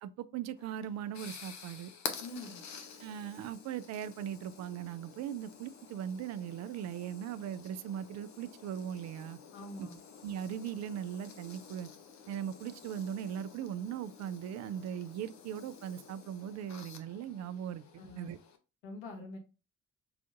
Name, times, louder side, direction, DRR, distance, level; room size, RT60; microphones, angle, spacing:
voice 1, 0.0-1.9 3.0-9.4 9.8-9.9 10.2-11.9 12.3-17.8 18.2-18.4, right 9 dB, 55° right, 0.4 m, -39 dB
sound 1, 0.6-18.6, left 6 dB, 55° left, 0.8 m, -49 dB
voice 2, 2.2-2.6 9.5-10.0 18.0-18.3 18.8-19.4, left 2 dB, 80° left, 1.0 m, -45 dB
5.6 x 2.5 x 2.4 m
hypercardioid pair, 45°, 33 cm